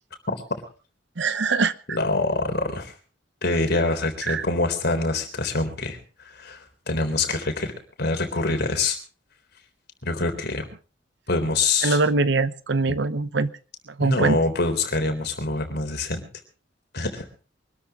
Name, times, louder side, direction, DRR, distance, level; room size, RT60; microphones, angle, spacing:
voice 1, 1.2-1.7 4.3-4.4 11.8-13.5 14.0-14.4, right 3 dB, 65° right, 14 dB, 0.9 m, -22 dB
voice 2, 1.9-2.9 3.4-6.0 6.3-7.7 8.0-9.0 10.0-10.7 11.3-12.0 12.9-13.0 14.0-16.2 16.9-17.3, left 3 dB, 60° left, 6 dB, 3.7 m, -25 dB
24.0 x 13.0 x 3.7 m, 0.37 s
head